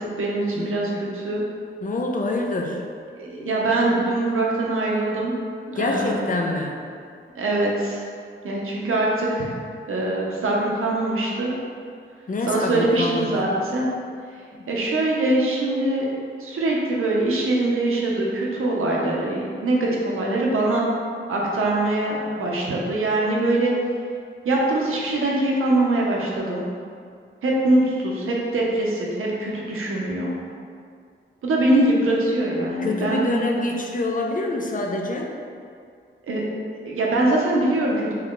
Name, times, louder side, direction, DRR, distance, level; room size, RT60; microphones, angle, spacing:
voice 1, 0.0-1.4 3.2-5.3 5.7-6.3 7.4-8.1 8.4-9.5 9.9-11.5 12.4-13.9 14.7-16.1 16.4-20.9 21.3-23.7 24.4-26.6 27.4-30.4 31.4-33.3 36.2-36.4 36.8-38.1, right 2 dB, 85° right, -3 dB, 0.6 m, -23 dB
voice 2, 0.6-1.1 1.8-2.8 5.8-6.8 12.3-13.4 14.5-14.7 32.8-35.3, left 2 dB, 40° left, 1 dB, 0.5 m, -26 dB
3.1 x 2.4 x 3.6 m, 2.2 s
cardioid pair, 55°, 21 cm